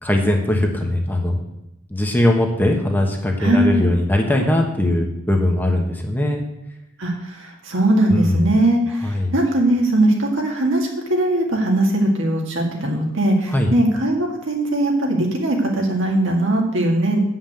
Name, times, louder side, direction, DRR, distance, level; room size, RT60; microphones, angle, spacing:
voice 1, 0.0-1.4 1.9-6.4 8.1-8.5 9.0-9.3 13.5-13.7, left 1 dB, 10° left, 1 dB, 1.2 m, -20 dB
voice 2, 3.4-3.8 7.0-17.2, right 1 dB, 65° right, 1 dB, 2.1 m, -20 dB
8.6 x 5.7 x 7.6 m, 0.90 s
head